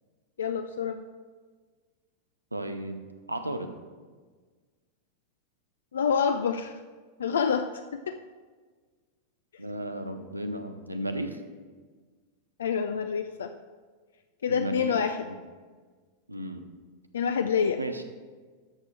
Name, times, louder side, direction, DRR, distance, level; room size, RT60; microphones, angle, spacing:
voice 1, 0.4-1.0 5.9-6.8 7.2-7.7 8.1-8.2 12.6-13.5 14.4-15.3 17.1-17.8, left 6 dB, 65° left, 8 dB, 0.4 m, -27 dB
voice 2, 2.5-3.7 9.6-11.4 14.5-14.9 15.3-15.4 16.3-16.7 17.8-18.0, right 1 dB, 85° right, 7 dB, 0.7 m, -34 dB
12.5 x 6.6 x 3.3 m, 1.5 s
figure-of-eight pair, 90°, 0 cm